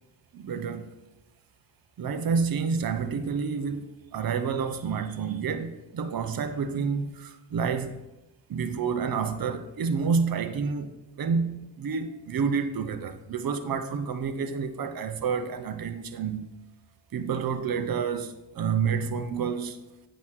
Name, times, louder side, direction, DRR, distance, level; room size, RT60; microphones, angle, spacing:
voice 1, 0.3-1.0 2.0-8.0 8.5-16.5 17.1-19.8, right 6 dB, 50° right, 0.8 m, -29 dB
8.4 x 3.1 x 6.2 m
cardioid pair, 60°, 46 cm